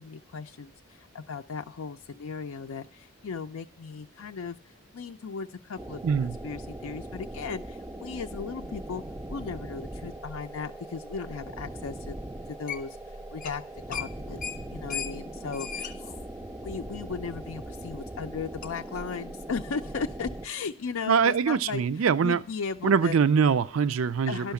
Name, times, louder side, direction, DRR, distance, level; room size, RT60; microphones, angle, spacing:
voice 1, 0.0-6.0 6.4-9.0 9.3-12.2 12.5-13.6 13.9-14.4 14.7-16.2 16.6-23.2 24.2-24.5, left 5 dB, 80° left, 0.4 m, -36 dB
sound 1, 5.8-20.5, right 1 dB, 10° right, 0.4 m, -40 dB
voice 2, 6.0-6.3 21.1-22.4 22.8-24.4, right 6 dB, 75° right, 0.4 m, -23 dB
sound 2, 12.7-13.1 13.3-13.6 13.9-17.3 17.7-17.8 18.6-18.7, left 7 dB, 40° left, 0.7 m, -37 dB
11.5 x 5.6 x 7.0 m
head